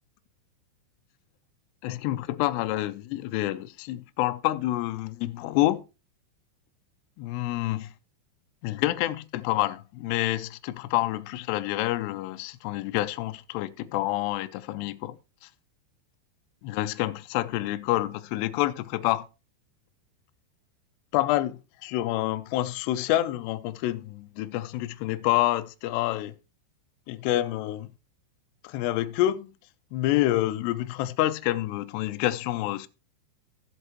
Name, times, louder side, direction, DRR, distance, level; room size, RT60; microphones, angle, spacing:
voice 1, 1.8-5.8 7.2-7.9 8.6-15.2 15.4-15.5 16.6-19.3 21.1-26.3 27.1-27.9 28.6-29.5 29.9-32.9, left 15 dB, 85° left, 2.4 m, -28 dB
15.5 x 7.9 x 3.0 m
omnidirectional pair, 5.6 m